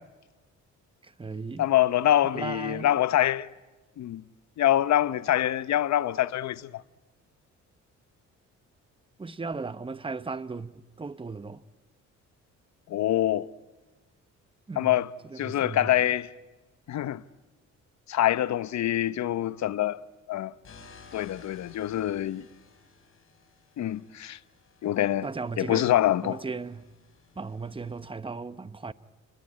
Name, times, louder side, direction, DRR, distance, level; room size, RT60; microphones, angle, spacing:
voice 1, 1.0-1.7 2.3-2.9 9.2-11.6 14.7-15.0 15.3-16.1 25.2-25.9 26.2-26.8 27.3-28.9, right 4 dB, 15° right, 0.9 m, -36 dB
voice 2, 1.6-3.5 4.0-4.2 4.6-6.8 12.9-13.5 14.8-15.1 15.4-16.3 16.9-17.2 18.1-20.0 20.3-20.5 21.1-22.4 23.8-24.4 24.8-25.3 25.6-26.4, left 12 dB, 65° left, 0.8 m, -25 dB
sound 1, 20.6-28.1, left 5 dB, 45° left, 7.5 m, -56 dB
30.0 x 22.5 x 8.9 m
cardioid pair, 90°, 30 cm